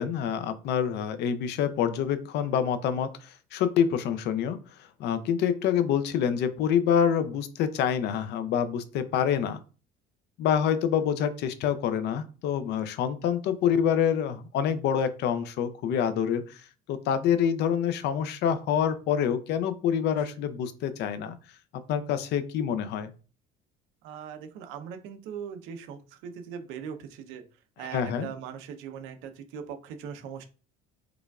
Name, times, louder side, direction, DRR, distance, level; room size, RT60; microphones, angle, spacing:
voice 1, 0.0-4.6 5.0-9.6 10.4-16.6 16.9-21.4 21.9-23.1 27.8-28.3, left 8 dB, 60° left, 11 dB, 0.5 m, -26 dB
voice 2, 24.0-27.4 27.8-30.5, right 7 dB, 80° right, 7 dB, 0.7 m, -40 dB
4.9 x 2.4 x 2.3 m, 0.36 s
cardioid pair, 150°, 20 cm